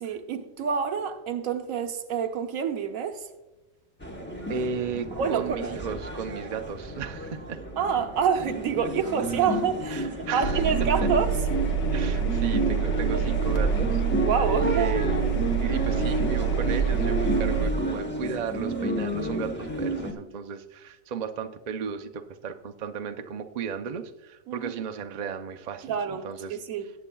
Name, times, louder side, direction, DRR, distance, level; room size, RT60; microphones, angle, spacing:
voice 1, 0.0-3.3 5.2-5.7 7.8-11.3 13.1-13.4 14.2-14.9 24.5-24.7 25.8-26.9, right 7 dB, 85° right, 1.2 m, -27 dB
sound 1, 4.0-20.1, right 1 dB, 10° left, 0.9 m, -31 dB
voice 2, 4.5-7.6 9.9-10.6 11.9-14.3 14.7-26.6, right 6 dB, 50° right, 0.5 m, -35 dB
Engine, 10.4-17.7, right 6 dB, 65° left, 1.4 m, -26 dB
18.5 x 8.3 x 2.3 m
omnidirectional pair, 1.4 m